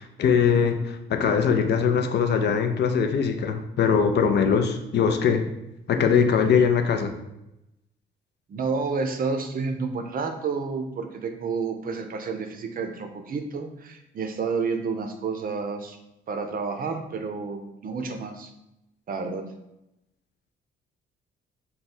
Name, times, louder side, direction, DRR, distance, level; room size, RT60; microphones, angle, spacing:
voice 1, 0.0-5.5 5.9-7.1, left 6 dB, 60° left, 6 dB, 0.5 m, -22 dB
voice 2, 8.5-16.0 16.3-18.5 19.1-19.5, right 4 dB, 45° right, 6 dB, 0.5 m, -30 dB
3.5 x 2.3 x 4.2 m, 0.89 s
cardioid pair, 90°, 20 cm